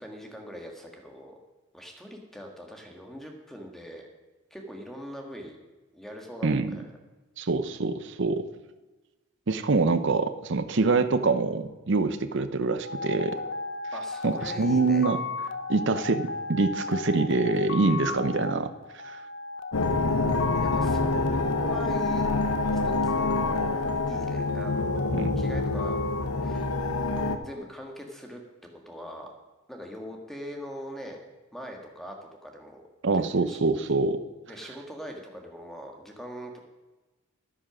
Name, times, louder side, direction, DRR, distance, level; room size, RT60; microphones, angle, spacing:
voice 1, 0.0-1.4 1.7-4.1 4.5-5.6 5.9-6.6 13.9-15.1 20.6-21.1 21.4-22.3 22.8-26.0 26.4-26.7 27.4-28.4 28.8-29.3 29.7-31.2 31.5-32.1 32.4-32.8 33.1-33.6 34.5-36.6, equal, ahead, 2 dB, 1.5 m, -41 dB
voice 2, 6.4-6.8 7.4-8.5 9.5-13.4 14.2-15.2 15.7-18.7 19.0-19.2 25.1-25.3 33.0-34.2, right 3 dB, 55° right, 10 dB, 0.6 m, -25 dB
sound 1, 12.8-27.3, left 3 dB, 55° left, 0.7 m, -35 dB
sound 2, 19.7-27.4, left 3 dB, 85° left, 0.9 m, -27 dB
10.0 x 9.9 x 6.0 m, 1.2 s
head